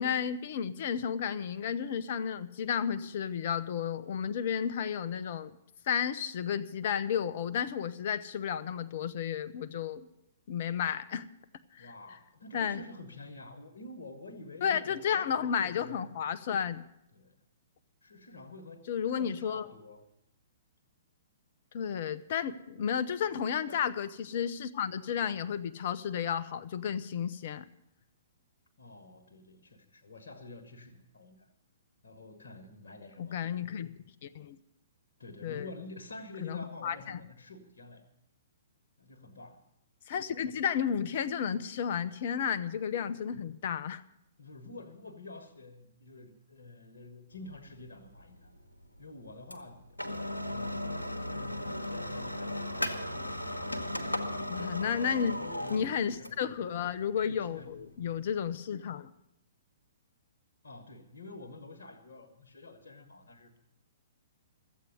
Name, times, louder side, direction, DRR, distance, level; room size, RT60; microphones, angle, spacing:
voice 1, 0.0-5.5 5.9-10.1 10.5-11.3 11.7-11.9 12.5-12.8 14.6-16.9 18.9-19.7 21.7-27.7 33.2-33.9 34.2-34.6 35.4-35.7 36.4-37.2 40.1-44.0 54.5-55.4 55.7-59.1, left 8 dB, 45° left, 14 dB, 0.7 m, -32 dB
voice 2, 11.8-16.0 17.1-17.4 18.0-20.0 23.7-23.8 28.8-31.5 32.0-33.5 35.2-38.0 39.0-39.6 44.4-48.5 49.0-49.8 50.5-53.4 55.2-56.8 57.2-58.1 60.6-63.6, left 2 dB, 65° left, 6 dB, 1.5 m, -49 dB
sound 1, 47.3-58.5, left 1 dB, 90° left, 1.2 m, -37 dB
13.5 x 8.3 x 9.3 m, 0.84 s
figure-of-eight pair, 120°, 0 cm